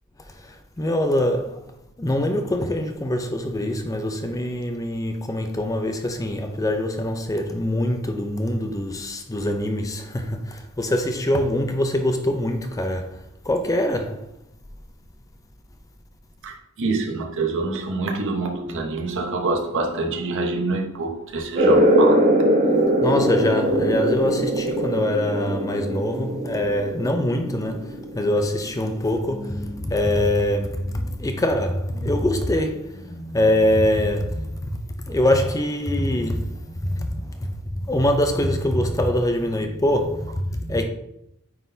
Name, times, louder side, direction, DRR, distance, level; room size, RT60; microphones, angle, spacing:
voice 1, 0.8-1.6 2.0-13.2 13.4-14.3 23.0-34.7 35.0-37.5 37.8-40.8, left 1 dB, 15° left, 0.5 m, -24 dB
voice 2, 16.4-22.3, right 3 dB, 60° right, 0.9 m, -26 dB
sound 1, 21.5-28.7, right 1 dB, 35° right, 1.0 m, -21 dB
9.1 x 3.9 x 2.7 m
head